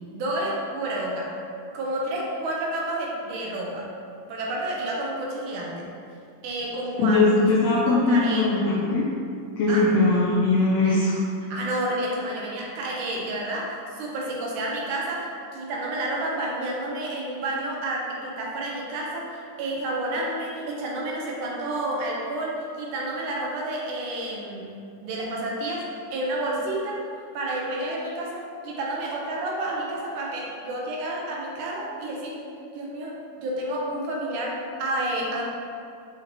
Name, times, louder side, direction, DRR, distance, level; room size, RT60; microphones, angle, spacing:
voice 1, 0.1-1.4 1.7-3.9 4.3-5.9 6.4-7.3 7.9-8.5 9.7-9.9 11.5-24.8 25.0-27.0 27.3-32.4 32.7-35.4, right 1 dB, 80° right, -2 dB, 2.3 m, -30 dB
voice 2, 7.0-9.1 9.6-11.2, left 3 dB, 80° left, -5 dB, 1.5 m, -20 dB
6.5 x 5.0 x 2.9 m, 2.4 s
omnidirectional pair, 3.6 m